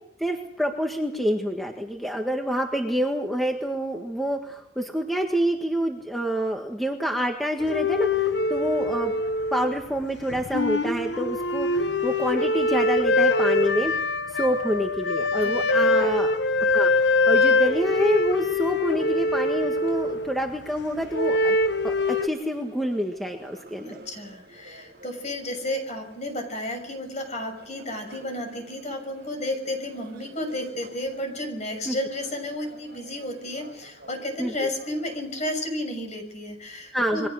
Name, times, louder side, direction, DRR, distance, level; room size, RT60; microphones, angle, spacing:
voice 1, 0.2-9.2 9.5-13.9 14.3-16.3 16.6-21.6 21.8-22.0 22.2-24.0 31.9-32.0 34.4-34.5 36.9-37.3, equal, ahead, 2 dB, 1.7 m, -27 dB
sound 1, 7.6-10.0 10.3-20.5 21.1-22.3, left 2 dB, 75° left, 1.2 m, -23 dB
voice 2, 15.4-16.0 23.8-37.3, left 1 dB, 40° left, 6 dB, 6.4 m, -32 dB
sound 2, 16.9-35.4, right 2 dB, 60° right, 7.2 m, -50 dB
28.0 x 22.5 x 6.4 m, 0.77 s
head